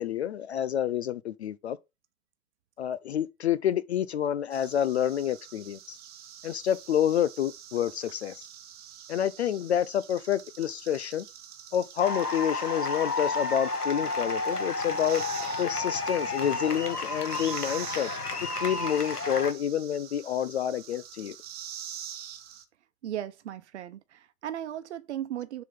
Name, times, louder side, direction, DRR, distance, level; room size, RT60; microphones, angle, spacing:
voice 1, 0.0-1.8 2.8-6.0 6.4-8.4 9.1-11.3 11.7-15.2 15.6-18.1 18.6-21.4, left 10 dB, 50° left, 0.5 m, -28 dB
sound 1, 4.5-22.6, right 10 dB, 20° right, 1.1 m, -46 dB
sound 2, 12.0-19.5, left 3 dB, 90° left, 1.3 m, -31 dB
voice 2, 23.0-25.6, right 11 dB, 50° right, 1.0 m, -36 dB
7.0 x 3.8 x 5.8 m
figure-of-eight pair, 110°, 45 cm